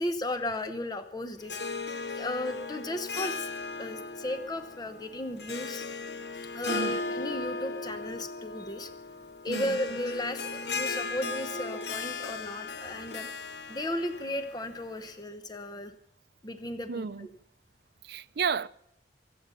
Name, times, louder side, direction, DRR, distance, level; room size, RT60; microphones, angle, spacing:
voice 1, 0.0-1.6 2.2-3.5 3.8-5.8 6.5-8.9 9.4-13.3 13.7-15.9 16.4-17.3, left 1 dB, 25° left, 0.9 m, -35 dB
Harp, 1.4-15.1, left 4 dB, 70° left, 1.0 m, -37 dB
voice 2, 6.7-7.0 9.5-9.8 16.9-17.3 18.0-18.7, right 6 dB, 65° right, 0.5 m, -32 dB
23.5 x 8.5 x 6.9 m
head